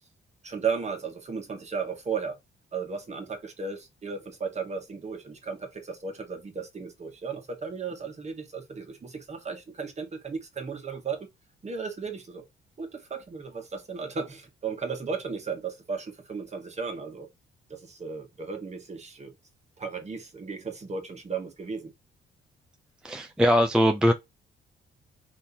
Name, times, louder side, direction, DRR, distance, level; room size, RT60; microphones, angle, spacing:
voice 1, 0.4-2.4 2.7-11.3 11.6-12.4 12.8-17.3 17.7-19.3 19.8-21.9, right 5 dB, 35° right, 1.3 m, -35 dB
voice 2, 23.0-24.1, equal, 5° right, 0.4 m, -21 dB
3.6 x 2.9 x 2.7 m
cardioid pair, 90°, 20 cm